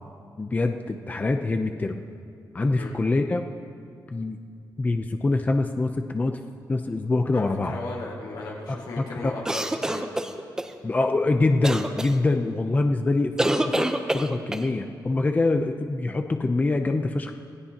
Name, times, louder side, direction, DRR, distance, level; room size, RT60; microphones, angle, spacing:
voice 1, 0.4-2.0 2.5-3.5 4.1-4.4 4.8-6.4 6.7-7.8 8.7-9.3 10.8-17.3, left 2 dB, 20° left, 5 dB, 0.6 m, -25 dB
voice 2, 7.3-10.1, left 3 dB, 85° left, -4 dB, 4.0 m, -36 dB
sound 1, 9.4-10.7 11.6-12.1 13.4-14.7, right 1 dB, 10° right, 0.8 m, -26 dB
27.0 x 17.0 x 3.0 m, 2.3 s
wide cardioid pair, 125°, 7 cm